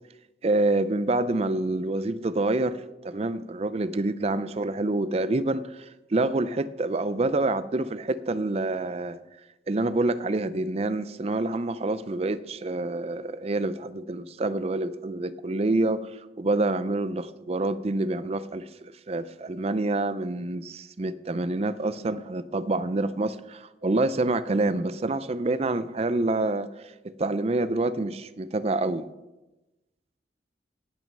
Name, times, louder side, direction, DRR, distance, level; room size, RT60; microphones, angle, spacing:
voice 1, 0.4-9.2 9.7-26.7 27.0-29.1, right 2 dB, 35° right, 15 dB, 0.4 m, -27 dB
18.0 x 6.2 x 5.4 m, 1.0 s
head